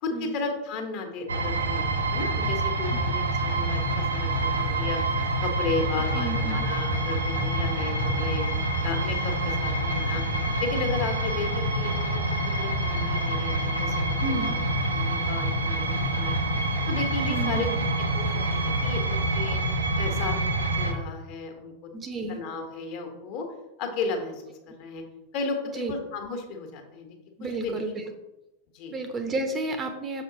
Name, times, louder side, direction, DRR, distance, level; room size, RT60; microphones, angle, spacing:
voice 1, 0.0-5.0 5.4-8.4 8.8-10.2 10.6-12.2 12.6-13.9 14.2-14.6 14.9-16.4 16.9-17.7 18.1-19.6 20.0-21.7 22.3-23.5 23.8-25.0 25.3-27.1 27.6-27.8 28.7-29.0, left 4 dB, 45° left, 3 dB, 1.4 m, -34 dB
sound 1, 1.3-20.9, right 1 dB, 75° right, 0.9 m, -26 dB
voice 2, 6.1-6.6 14.2-14.6 17.2-17.6 21.9-22.4 25.8-25.9 27.4-28.1 28.9-30.2, right 2 dB, 20° right, 7 dB, 0.9 m, -31 dB
6.3 x 5.6 x 3.9 m, 0.98 s
figure-of-eight pair, 90°, 0 cm